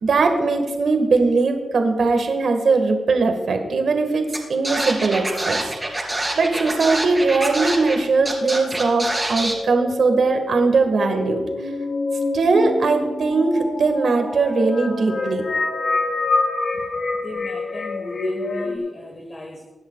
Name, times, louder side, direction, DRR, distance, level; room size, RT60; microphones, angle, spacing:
voice 1, 0.0-4.2 4.5-6.1 6.3-11.4 12.3-15.4, right 3 dB, 75° right, 5 dB, 1.7 m, -20 dB
Scratching (performance technique), 4.3-4.4 4.6-8.0 8.2-9.5, right 1 dB, 15° right, 3.1 m, -25 dB
sound 1, 9.1-18.8, left 3 dB, 55° left, 1.5 m, -27 dB
voice 2, 17.2-19.6, left 1 dB, 30° left, 3 dB, 1.3 m, -37 dB
24.0 x 10.5 x 2.4 m, 1.3 s
wide cardioid pair, 105°, 0 cm